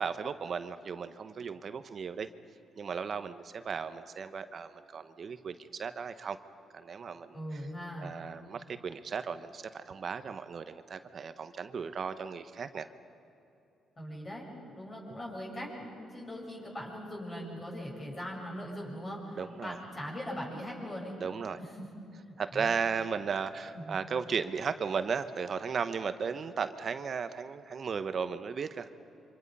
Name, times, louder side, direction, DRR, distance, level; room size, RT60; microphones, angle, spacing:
voice 1, 0.0-2.3 2.8-6.4 6.7-7.6 8.0-12.9 19.4-19.8 21.2-21.6 22.4-28.9, right 6 dB, 50° right, 11 dB, 1.0 m, -35 dB
voice 2, 7.3-8.1 14.0-21.2 21.6-21.9 22.5-22.8 23.7-24.0, equal, 30° left, -3 dB, 7.3 m, -40 dB
27.5 x 25.5 x 5.5 m, 2.8 s
cardioid pair, 90°, 0 cm